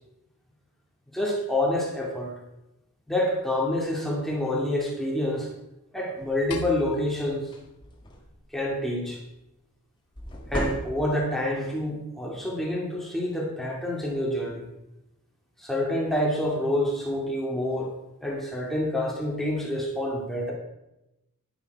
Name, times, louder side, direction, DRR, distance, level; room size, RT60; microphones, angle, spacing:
voice 1, 1.1-2.4 3.1-5.5 5.9-7.5 8.5-9.2 10.5-14.7 15.6-17.9 18.2-20.5, left 1 dB, ahead, -3 dB, 2.3 m, -27 dB
sound 1, 6.2-6.5 6.9-7.1 7.4-8.5 10.1-11.4, equal, 20° left, 1.7 m, -35 dB
sound 2, 6.5-8.9, left 3 dB, 85° left, 1.1 m, -42 dB
10.0 x 9.4 x 4.6 m, 0.91 s
head